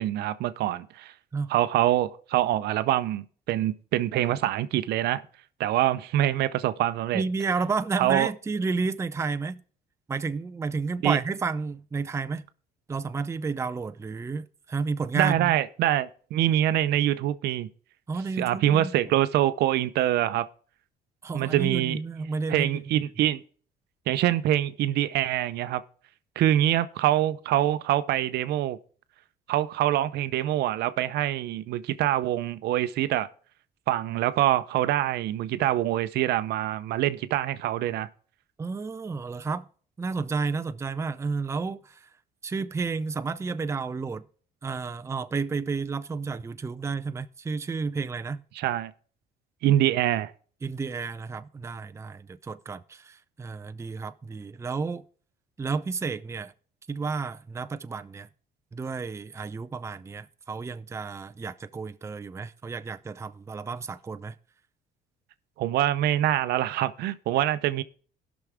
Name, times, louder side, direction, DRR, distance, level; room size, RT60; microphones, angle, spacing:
voice 1, 0.0-1.1 1.5-5.2 5.6-7.2 8.0-8.3 11.0-11.2 15.1-17.7 18.4-20.5 21.3-22.0 22.5-23.4 24.1-25.8 26.4-28.8 29.5-33.3 33.9-38.1 48.6-48.9 49.6-50.3 65.6-67.8, right 13 dB, 75° right, 0.6 m, -25 dB
voice 2, 7.1-9.6 10.1-12.4 12.9-15.5 18.1-18.9 21.2-22.8 38.6-39.6 40.0-42.1 42.4-44.2 44.6-48.4 50.6-55.0 55.6-56.5 56.9-58.3 58.7-64.4, right 4 dB, 15° right, 0.5 m, -31 dB
17.0 x 6.1 x 3.5 m
cardioid pair, 110°, 17 cm